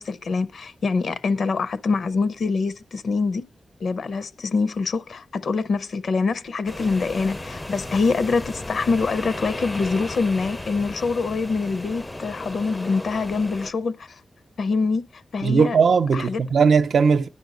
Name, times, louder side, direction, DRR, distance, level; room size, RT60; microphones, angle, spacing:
voice 1, 0.0-3.4 3.8-14.2 14.6-15.8 16.1-16.4, left 4 dB, 70° left, 0.5 m, -25 dB
sound 1, 6.6-13.7, left 1 dB, 15° left, 0.4 m, -35 dB
voice 2, 15.4-17.3, right 5 dB, 80° right, 0.6 m, -18 dB
10.0 x 6.0 x 5.1 m
wide cardioid pair, 165°, 0 cm